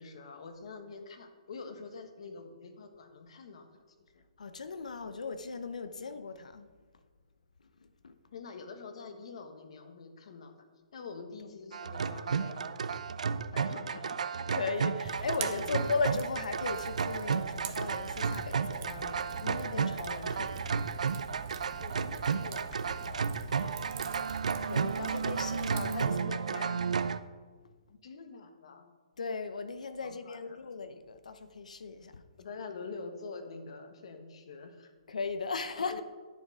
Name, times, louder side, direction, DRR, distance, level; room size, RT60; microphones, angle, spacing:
voice 1, 0.0-4.2 6.0-6.1 8.3-12.8 13.5-14.4 15.4-15.8 20.3-20.7 21.8-23.9 27.9-29.0 30.0-30.6 32.4-34.9 35.8-36.0, left 4 dB, 55° left, 1.3 m, -46 dB
voice 2, 4.4-6.7 8.0-8.2 14.5-21.3 24.6-26.9 29.2-32.2 35.1-36.0, left 4 dB, 90° left, 0.8 m, -37 dB
sound 1, 11.7-27.2, right 6 dB, 80° right, 0.5 m, -33 dB
Fire, 15.0-26.2, right 7 dB, 25° right, 0.7 m, -45 dB
9.9 x 6.6 x 4.9 m
hypercardioid pair, 165°, 4 cm